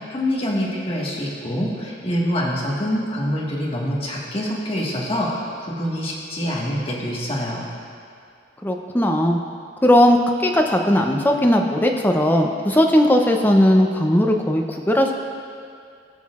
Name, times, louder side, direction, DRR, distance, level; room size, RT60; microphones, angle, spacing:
voice 1, 0.1-7.7, equal, 30° left, -5 dB, 1.5 m, -25 dB
voice 2, 8.6-9.4 9.8-15.2, left 1 dB, 10° left, 2 dB, 0.6 m, -17 dB
18.5 x 6.4 x 2.4 m, 2.4 s
head